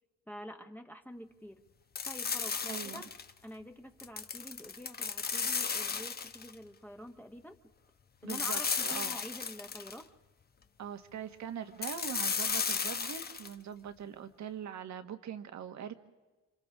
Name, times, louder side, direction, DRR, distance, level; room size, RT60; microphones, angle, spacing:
voice 1, 0.3-1.6 2.0-3.1 3.4-7.6 8.2-10.1, equal, 5° left, 4 dB, 1.2 m, -47 dB
sound 1, 1.9-3.3 4.0-6.5 8.3-10.0 11.8-13.5, left 5 dB, 30° left, 1.0 m, -34 dB
voice 2, 2.7-3.0 8.2-9.1 10.8-15.9, right 8 dB, 65° right, 8 dB, 1.6 m, -42 dB
29.5 x 26.5 x 3.7 m, 1.2 s
cardioid pair, 90°, 30 cm